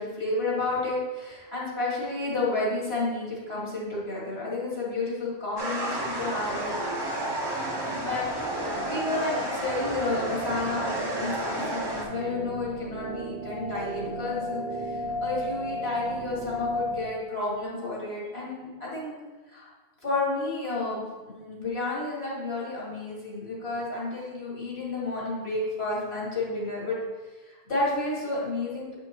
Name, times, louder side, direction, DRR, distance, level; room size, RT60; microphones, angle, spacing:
voice 1, 0.0-6.7 8.0-19.1 19.5-19.7 20.0-27.0 27.4-28.9, left 2 dB, 75° left, -5 dB, 2.2 m, -31 dB
sound 1, 5.6-12.0, right 1 dB, 25° right, 0.9 m, -31 dB
sound 2, 12.1-17.0, equal, 85° right, 1.1 m, -33 dB
8.2 x 5.2 x 2.9 m, 1.3 s
omnidirectional pair, 1.0 m